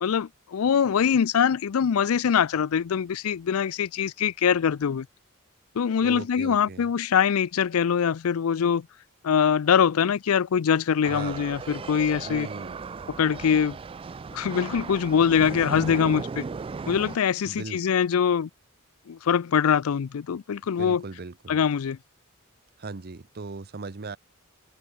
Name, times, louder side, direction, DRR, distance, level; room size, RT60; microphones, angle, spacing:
voice 1, 0.0-5.1 5.8-8.9 9.2-12.5 13.2-13.8 14.3-16.4 16.9-18.5 19.1-21.0 21.5-22.0, left 7 dB, 75° left, 0.4 m, -23 dB
voice 2, 6.0-6.9 11.1-11.4 12.2-12.8 17.4-17.8 20.8-21.6 22.8-24.2, right 3 dB, 45° right, 0.8 m, -38 dB
sound 1, 11.0-17.2, right 4 dB, 25° right, 0.3 m, -36 dB
head